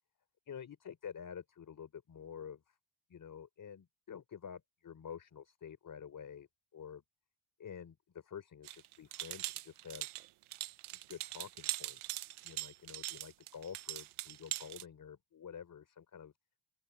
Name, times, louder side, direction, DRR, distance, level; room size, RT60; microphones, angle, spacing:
voice 1, 0.5-2.8 3.1-6.5 6.7-7.0 7.6-10.1 10.9-12.2 12.4-16.3, left 7 dB, 40° left, 3.7 m, -49 dB
sound 1, 8.6-14.8, right 17 dB, 85° right, 0.9 m, -42 dB
open air
cardioid pair, 135°, 49 cm